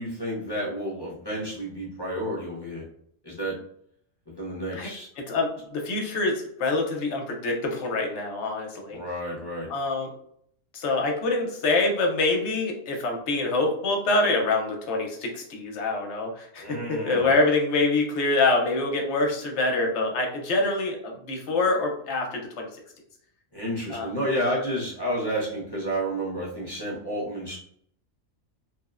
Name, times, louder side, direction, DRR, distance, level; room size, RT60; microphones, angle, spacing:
voice 1, 0.0-2.8 3.2-3.6 4.3-5.1 8.9-9.7 16.6-17.3 23.5-27.6, equal, 25° left, -7 dB, 0.5 m, -30 dB
voice 2, 5.2-9.0 9.7-10.1 10.7-22.7 23.9-24.1, left 2 dB, 65° left, 2 dB, 0.8 m, -25 dB
2.9 x 2.0 x 2.3 m, 0.65 s
omnidirectional pair, 1.4 m